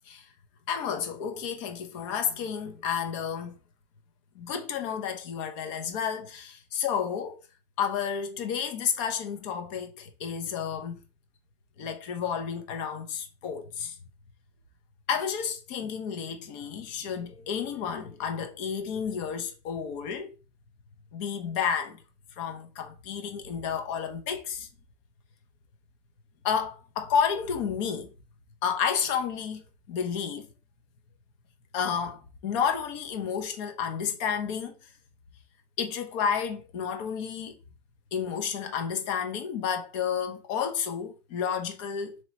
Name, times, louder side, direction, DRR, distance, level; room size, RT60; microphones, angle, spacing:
voice 1, 0.7-3.6 4.3-7.4 7.8-11.0 11.8-13.9 15.1-20.4 21.1-22.0 22.4-24.7 26.4-28.1 28.6-30.5 31.7-34.8 35.8-37.6 38.1-42.2, left 7 dB, 60° left, 0.9 m, -31 dB
3.1 x 2.9 x 4.3 m
supercardioid pair, 165°, 18 cm